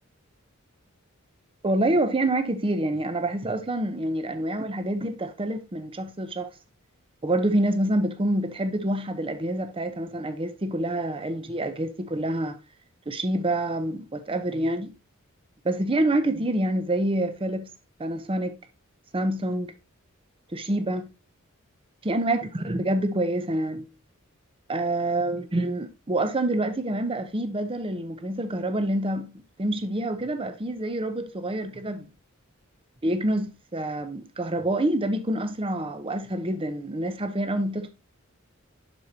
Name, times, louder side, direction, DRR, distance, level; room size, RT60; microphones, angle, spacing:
voice 1, 1.6-6.5 7.2-12.6 13.1-14.9 15.6-17.7 18.0-18.6 19.1-19.7 20.5-21.1 22.0-23.9 24.7-29.3 29.6-32.1 33.0-37.9, right 1 dB, 25° right, 0.7 m, -27 dB
11.5 x 4.7 x 2.8 m
head